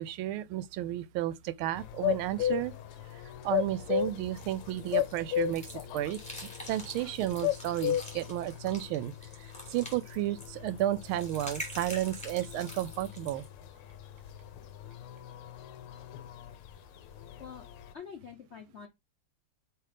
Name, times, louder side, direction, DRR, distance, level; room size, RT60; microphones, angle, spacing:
voice 1, 0.0-2.8 3.1-5.7 5.9-6.2 6.7-9.1 9.4-13.4, right 14 dB, 80° right, 1.3 m, -32 dB
sound 1, 1.8-17.9, left 11 dB, 80° left, 1.5 m, -36 dB
sound 2, 2.6-7.7, left 4 dB, 40° left, 1.3 m, -59 dB
sound 3, 4.8-13.5, equal, 5° left, 2.8 m, -46 dB
voice 2, 17.9-18.9, left 7 dB, 60° left, 0.7 m, -45 dB
7.8 x 3.2 x 5.0 m
omnidirectional pair, 2.4 m